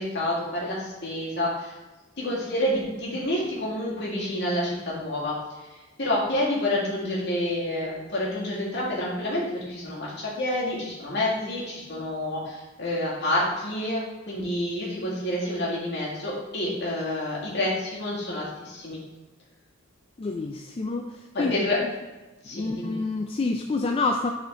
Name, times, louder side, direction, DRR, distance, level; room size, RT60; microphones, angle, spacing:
voice 1, 0.0-1.8 2.2-5.4 5.7-19.0 21.3-21.8 22.4-23.0, left 1 dB, 60° left, -6 dB, 2.1 m, -28 dB
voice 2, 20.2-21.6 22.5-24.3, left 3 dB, 30° left, 3 dB, 0.3 m, -28 dB
7.1 x 4.3 x 3.6 m, 1.2 s
head